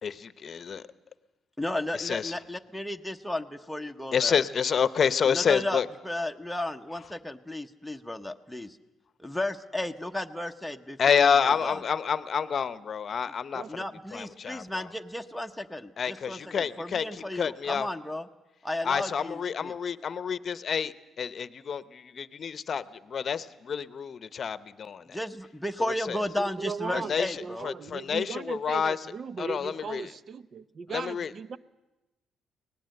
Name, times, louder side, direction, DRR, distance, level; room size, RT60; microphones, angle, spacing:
voice 1, 0.0-0.8 2.0-2.3 4.1-5.9 11.0-13.8 14.1-14.9 16.0-17.9 18.8-25.2 26.1-26.2 26.9-29.0 29.4-30.1 30.9-31.3, left 7 dB, 50° left, 14 dB, 0.8 m, -28 dB
voice 2, 1.6-4.4 5.3-8.8 9.2-11.8 13.7-18.3 18.6-19.7 25.1-27.7, left 1 dB, ahead, 3 dB, 0.9 m, -34 dB
voice 3, 26.4-31.6, right 5 dB, 50° right, 15 dB, 0.7 m, -38 dB
24.0 x 18.5 x 7.8 m, 1.1 s
cardioid pair, 90°, 0 cm